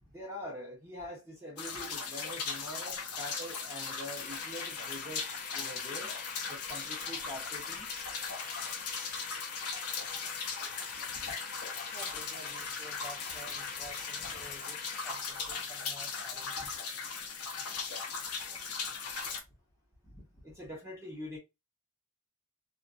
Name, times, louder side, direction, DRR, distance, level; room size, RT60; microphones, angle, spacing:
voice 1, 0.1-6.1 6.5-7.9 20.4-21.4, left 1 dB, 10° right, 1.0 m, -44 dB
sound 1, 1.6-19.4, left 5 dB, 75° left, 0.7 m, -38 dB
sound 2, 4.2-15.1, left 5 dB, 40° left, 0.4 m, -46 dB
voice 2, 11.8-16.8 19.3-19.4 20.0-20.2, equal, 15° left, 1.2 m, -51 dB
2.7 x 2.5 x 2.6 m
head